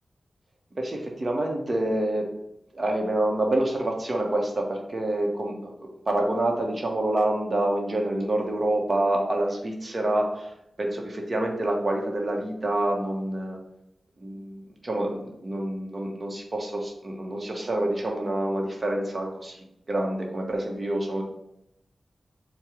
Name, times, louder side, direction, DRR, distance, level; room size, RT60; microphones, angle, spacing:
voice 1, 0.7-2.3 2.7-5.7 6.1-10.5 10.8-13.6 14.2-21.2, right 1 dB, 50° right, 1 dB, 1.0 m, -27 dB
4.6 x 2.3 x 4.8 m, 0.82 s
cardioid pair, 45°, 0 cm